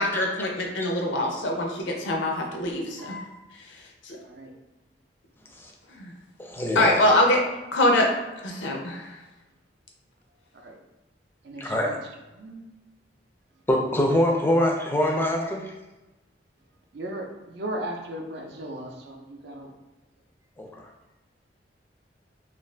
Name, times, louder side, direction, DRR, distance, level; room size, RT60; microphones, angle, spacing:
voice 1, 0.0-3.1 4.1-4.2 6.0-6.1 6.8-7.4 7.7-8.1 8.4-9.1, left 1 dB, 80° left, 1 dB, 0.5 m, -23 dB
voice 2, 6.4-7.0 11.6-11.9 13.7-15.7 20.6-20.9, left 1 dB, 10° left, 0 dB, 0.3 m, -25 dB
voice 3, 11.4-12.0 12.4-12.7 16.9-19.7, right 1 dB, 60° right, 1 dB, 0.5 m, -36 dB
2.5 x 2.4 x 3.1 m, 1.1 s
head